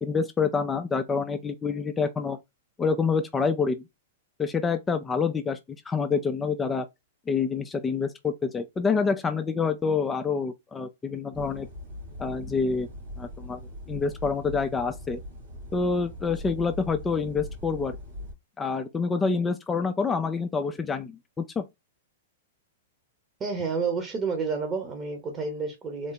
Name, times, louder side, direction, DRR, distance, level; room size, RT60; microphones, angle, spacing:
voice 1, 0.0-2.4 2.8-3.8 4.4-5.6 5.9-6.9 7.3-11.7 12.2-12.9 13.2-13.6 13.9-15.2 15.7-18.0 18.6-21.6, left 5 dB, 15° left, 0.4 m, -27 dB
sound 1, 11.3-18.3, left 1 dB, 90° right, 2.0 m, -41 dB
voice 2, 23.4-26.1, right 4 dB, 25° right, 1.1 m, -30 dB
3.8 x 2.1 x 3.9 m
hypercardioid pair, 125°, 0 cm